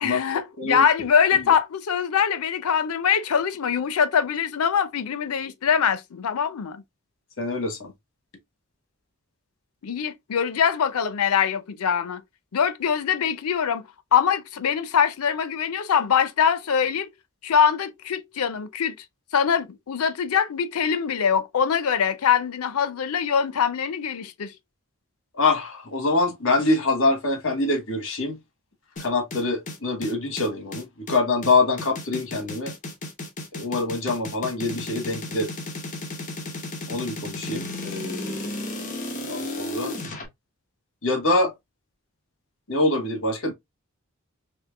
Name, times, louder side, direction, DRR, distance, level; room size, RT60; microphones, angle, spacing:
voice 1, 0.0-6.8 9.8-12.2 12.5-13.8 14.1-17.1 17.4-18.9 19.3-24.5, left 7 dB, 90° left, 0.5 m, -23 dB
voice 2, 7.4-7.9 25.4-28.4 29.0-32.7 33.5-35.5 36.9-38.7 39.3-39.9 41.0-41.5 42.7-43.5, left 2 dB, 65° left, 1.1 m, -25 dB
sound 1, 29.0-40.2, left 2 dB, 35° left, 0.9 m, -34 dB
4.3 x 2.8 x 2.3 m
head